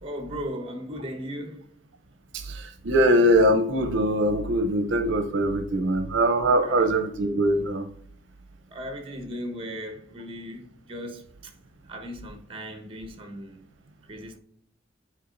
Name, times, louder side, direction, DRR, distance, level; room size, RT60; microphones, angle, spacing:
voice 1, 0.0-1.7 6.6-6.8 8.7-11.5 11.9-13.7 14.1-14.4, equal, 30° right, 1.1 m, -37 dB
voice 2, 2.3-7.9, right 1 dB, 70° right, 0.6 m, -22 dB
9.8 x 4.6 x 2.6 m
head